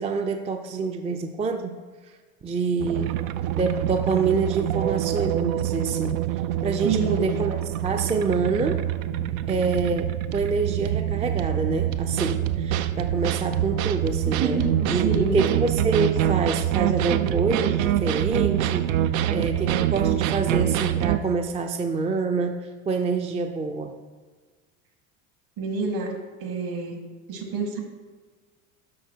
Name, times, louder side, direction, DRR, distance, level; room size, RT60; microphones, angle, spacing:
voice 1, 0.0-1.8 2.4-3.2 3.5-6.2 6.6-8.8 9.5-14.6 14.9-18.9 19.3-24.0, right 4 dB, 15° right, 5 dB, 0.4 m, -26 dB
sound 1, 2.8-21.2, right 11 dB, 80° right, 0.5 m, -25 dB
voice 2, 6.8-7.4 14.3-15.4 25.6-27.0 27.3-27.8, right 3 dB, 60° right, 2 dB, 1.9 m, -28 dB
11.5 x 4.4 x 2.8 m, 1.4 s
hypercardioid pair, 85°, 41 cm